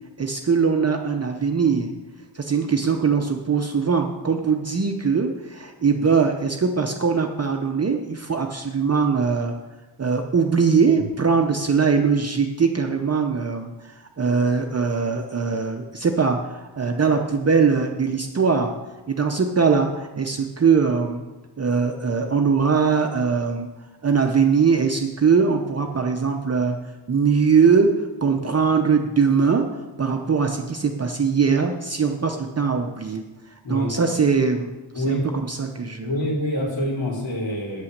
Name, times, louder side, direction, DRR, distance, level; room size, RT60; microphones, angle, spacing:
voice 1, 0.2-1.9 2.3-9.5 10.0-18.7 19.1-21.2 21.6-23.7 24.0-26.8 27.1-27.9 28.2-36.1, right 5 dB, 35° right, 3 dB, 0.6 m, -21 dB
voice 2, 34.9-35.3 36.0-37.8, left 1 dB, 75° left, -4 dB, 3.9 m, -26 dB
8.8 x 8.4 x 6.5 m, 1.1 s
wide cardioid pair, 175°, 45 cm